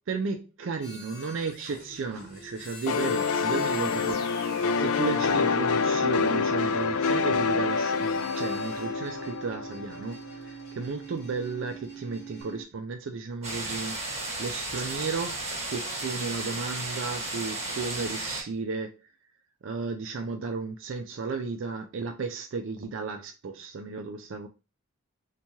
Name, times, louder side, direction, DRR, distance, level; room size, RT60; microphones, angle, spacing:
voice 1, 0.1-15.4 15.7-19.0 19.6-24.5, right 4 dB, 60° right, 0.4 m, -34 dB
sound 1, 0.8-12.6, right 1 dB, 45° left, 0.9 m, -44 dB
sound 2, 2.9-10.3, left 5 dB, 90° left, 0.4 m, -27 dB
sound 3, 13.4-18.4, right 2 dB, 30° right, 1.0 m, -34 dB
3.4 x 2.9 x 2.9 m
head